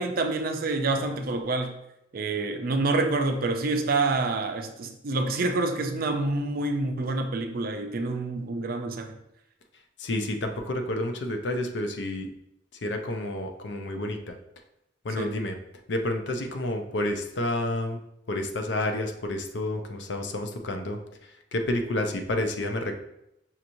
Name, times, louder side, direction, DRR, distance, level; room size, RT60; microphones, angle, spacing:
voice 1, 0.0-1.7 2.1-9.2 15.2-15.4, right 3 dB, 55° right, 5 dB, 0.5 m, -27 dB
voice 2, 10.0-12.3 12.8-14.4 15.0-15.6 15.9-18.0 18.3-21.0 21.5-23.0, left 1 dB, 75° left, 5 dB, 0.5 m, -29 dB
5.6 x 2.9 x 2.6 m, 0.82 s
head